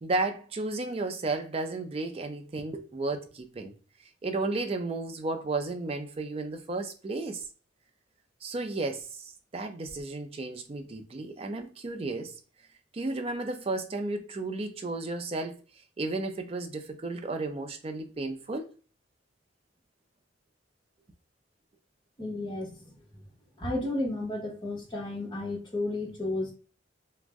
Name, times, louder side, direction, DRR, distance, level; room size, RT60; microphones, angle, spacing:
voice 1, 0.0-3.7 4.2-7.4 8.4-12.3 12.9-15.6 16.0-18.7, right 2 dB, 30° right, 0.4 m, -33 dB
voice 2, 22.2-22.9 23.6-26.5, left 2 dB, 25° left, 0.9 m, -32 dB
2.5 x 2.0 x 3.5 m
head